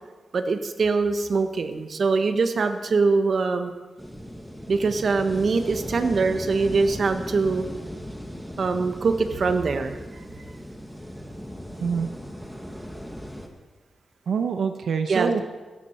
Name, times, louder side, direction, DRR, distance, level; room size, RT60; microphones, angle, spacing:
voice 1, 0.3-3.7 4.7-7.7 8.6-10.0 15.1-15.4, right 4 dB, 55° right, 7 dB, 1.2 m, -23 dB
sound 1, 4.0-13.5, equal, ahead, 1.7 m, -37 dB
voice 2, 11.8-12.1 14.3-15.4, right 6 dB, 85° right, 6 dB, 0.8 m, -25 dB
16.5 x 13.0 x 4.5 m, 1.3 s
wide cardioid pair, 110°, 0 cm